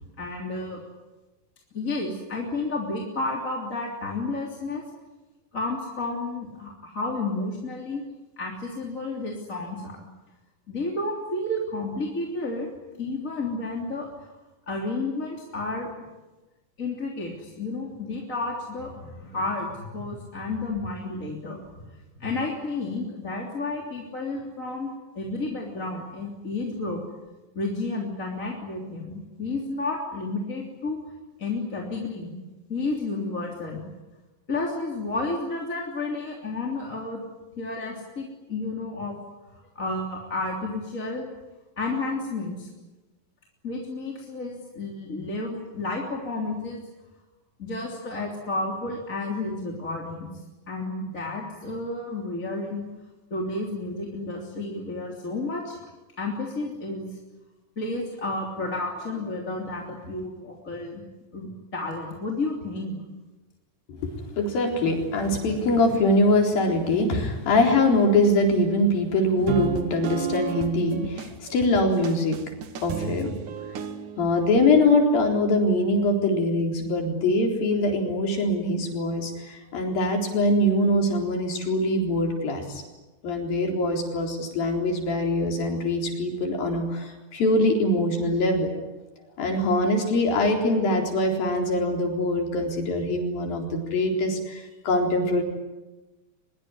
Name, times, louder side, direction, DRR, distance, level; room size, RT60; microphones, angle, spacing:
voice 1, 0.2-0.8 1.7-4.9 5.5-8.0 8.4-10.0 10.7-12.7 13.0-14.1 14.7-15.9 16.8-24.9 25.1-27.0 27.5-31.0 31.4-32.3 32.7-33.8 34.5-37.2 37.6-39.2 39.5-41.3 41.8-42.7 43.6-46.8 47.6-50.3 50.7-52.9 53.3-55.8 56.2-57.1 57.8-61.0 61.3-63.0, left 2 dB, 25° left, -1 dB, 3.3 m, -31 dB
voice 2, 63.9-72.4 72.8-73.3 74.2-82.8 83.2-88.7 89.4-95.4, left 1 dB, 80° left, 2 dB, 5.8 m, -23 dB
sound 1, 69.4-74.3, right 7 dB, 65° right, 2.9 m, -33 dB
23.5 x 22.5 x 9.8 m, 1.1 s
omnidirectional pair, 4.1 m